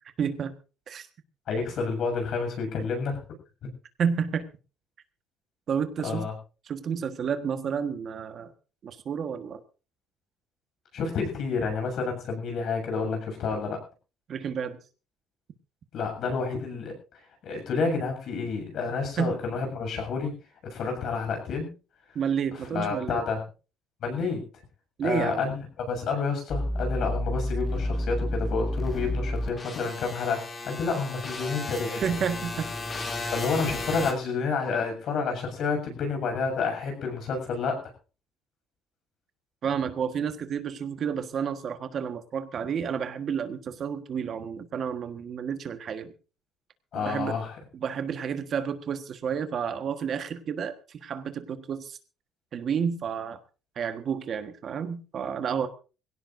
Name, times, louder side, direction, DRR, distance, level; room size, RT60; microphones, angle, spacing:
voice 1, 0.2-0.5 0.9-1.1 4.0-4.4 5.7-6.3 6.7-8.5 8.8-9.6 14.3-14.8 19.2-19.4 22.1-23.2 25.0-25.5 32.0-32.7 39.6-46.1 46.9-47.4 47.7-52.0 52.5-53.4 53.8-55.7, right 7 dB, 40° right, 8 dB, 1.4 m, -30 dB
voice 2, 1.5-3.2 3.6-3.7 6.0-6.3 10.9-13.8 15.9-16.9 17.4-20.3 20.7-21.7 22.7-23.4 24.0-24.4 25.0-32.0 33.3-37.9 46.9-47.5, left 4 dB, 55° left, 4 dB, 7.3 m, -29 dB
sound 1, 26.5-34.1, left 1 dB, 25° left, 2.8 m, -31 dB
22.5 x 17.0 x 2.6 m, 0.34 s
cardioid pair, 160°, 0 cm